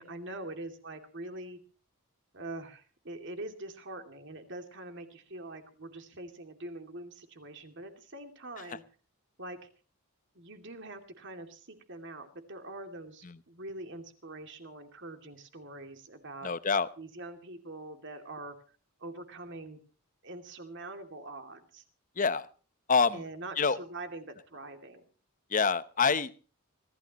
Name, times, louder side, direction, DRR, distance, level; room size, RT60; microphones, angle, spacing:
voice 1, 0.0-1.6 2.3-8.8 9.4-9.7 10.3-16.5 17.0-18.6 19.0-19.8 20.2-21.8 23.1-25.0, right 2 dB, 55° right, 6 dB, 2.5 m, -44 dB
voice 2, 16.4-16.9 22.2-22.5 22.9-23.2 23.6-23.8 25.5-26.3, left 5 dB, 35° left, 14 dB, 0.8 m, -26 dB
25.0 x 15.5 x 3.0 m, 0.37 s
head